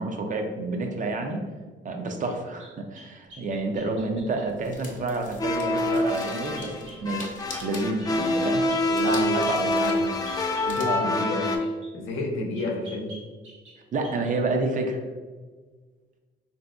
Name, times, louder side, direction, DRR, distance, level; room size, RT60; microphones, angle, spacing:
voice 1, 0.0-1.4 1.8-7.3 7.6-8.7 9.1-9.7 10.7-11.1 13.9-15.0, right 2 dB, 40° right, 4 dB, 0.5 m, -29 dB
sound 1, 2.6-4.5 6.6-7.0 7.5-7.7 8.0-8.4 8.7-11.9 12.5-13.8 14.0-14.4, equal, 80° right, 1.0 m, -47 dB
sound 2, 3.3-10.8, left 2 dB, 40° left, 0.7 m, -45 dB
sound 3, 5.4-11.6, left 1 dB, 20° left, 0.3 m, -26 dB
voice 2, 8.8-10.0 10.6-11.4 11.9-13.1, left 1 dB, 90° left, 1 dB, 0.6 m, -31 dB
3.4 x 2.6 x 2.3 m, 1.4 s
cardioid pair, 90°, 20 cm